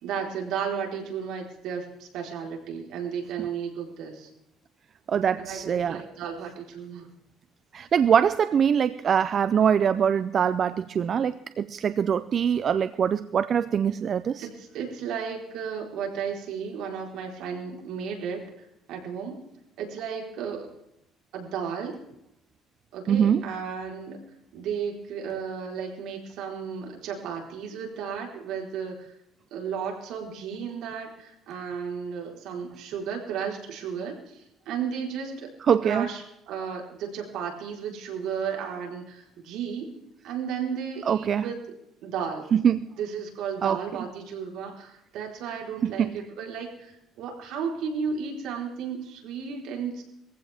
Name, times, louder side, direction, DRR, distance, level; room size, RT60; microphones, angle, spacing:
voice 1, 0.0-4.3 5.4-7.1 14.4-18.4 18.9-19.4 19.8-20.7 21.3-22.0 22.9-24.2 24.5-29.1 29.5-35.5 35.8-41.6 42.0-42.5 43.0-50.0, right 7 dB, 75° right, 1 dB, 4.0 m, -34 dB
voice 2, 5.1-6.0 7.7-14.4 23.1-23.4 35.7-36.1 41.1-41.5 42.5-42.9 43.6-43.8 45.8-46.1, right 8 dB, 40° right, 13 dB, 0.5 m, -23 dB
20.5 x 15.0 x 3.5 m, 0.80 s
cardioid pair, 135°, 0 cm